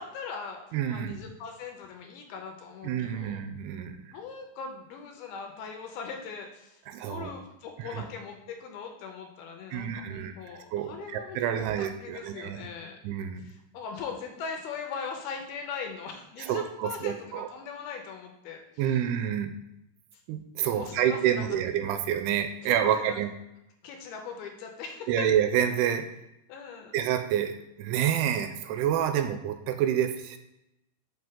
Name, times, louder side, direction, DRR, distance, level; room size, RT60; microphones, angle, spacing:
voice 1, 0.0-3.4 4.1-13.0 13.4-19.0 20.1-20.2 20.7-21.7 22.6-23.2 23.8-25.3 26.5-27.0, left 5 dB, 80° left, 3 dB, 2.4 m, -40 dB
voice 2, 0.7-1.2 2.8-4.0 6.9-7.3 7.8-8.0 9.7-10.3 10.7-12.6 13.0-13.4 16.4-17.5 18.8-19.5 20.3-23.3 25.1-26.0 26.9-30.4, right 10 dB, 85° right, 8 dB, 2.5 m, -28 dB
6.0 x 5.4 x 3.6 m, 0.87 s
omnidirectional pair, 4.7 m